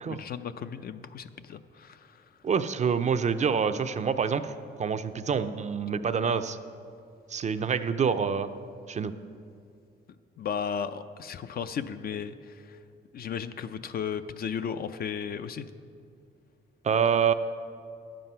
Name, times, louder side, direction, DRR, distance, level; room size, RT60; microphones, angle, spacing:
voice 1, 0.0-2.3 10.4-12.8 13.1-15.7, left 7 dB, 50° left, 11 dB, 0.5 m, -35 dB
voice 2, 2.4-4.4 4.8-6.6 7.3-8.5 8.9-9.1 16.8-17.3, right 6 dB, 35° right, 10 dB, 0.5 m, -26 dB
10.5 x 7.6 x 5.6 m, 2.3 s
cardioid pair, 90°, 20 cm